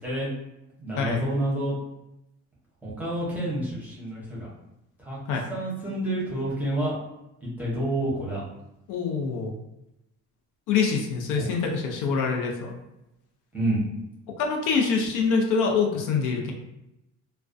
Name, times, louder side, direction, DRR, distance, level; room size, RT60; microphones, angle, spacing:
voice 1, 0.8-1.7 2.8-4.5 5.0-6.9 7.4-8.4 11.4-11.5 13.5-13.8, right 1 dB, 5° right, -7 dB, 0.7 m, -29 dB
voice 2, 8.9-9.5 10.7-12.7 14.4-16.5, left 5 dB, 90° left, 1 dB, 0.6 m, -25 dB
2.3 x 2.1 x 2.5 m, 0.88 s
cardioid pair, 165°, 30 cm